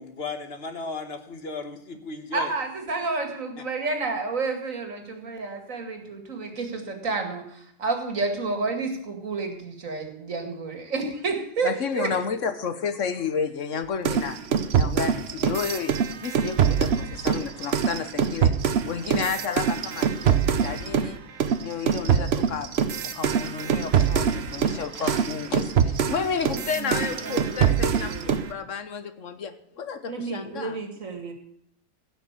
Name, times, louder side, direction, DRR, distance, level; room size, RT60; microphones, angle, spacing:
voice 1, 0.0-2.5 3.6-3.7, left 3 dB, 50° left, 7 dB, 1.5 m, -35 dB
voice 2, 2.3-12.1 25.0-25.2 26.7-28.4 30.0-31.3, right 3 dB, 80° right, 4 dB, 2.6 m, -30 dB
voice 3, 11.6-14.4 14.7-15.9 16.2-18.5 18.9-20.4 20.6-21.2 21.6-22.7 23.0-30.8, left 6 dB, 70° left, 10 dB, 1.4 m, -31 dB
sound 1, 14.0-21.1 21.4-28.5, right 7 dB, 55° right, 1.0 m, -24 dB
16.0 x 6.0 x 8.2 m, 0.69 s
omnidirectional pair, 1.4 m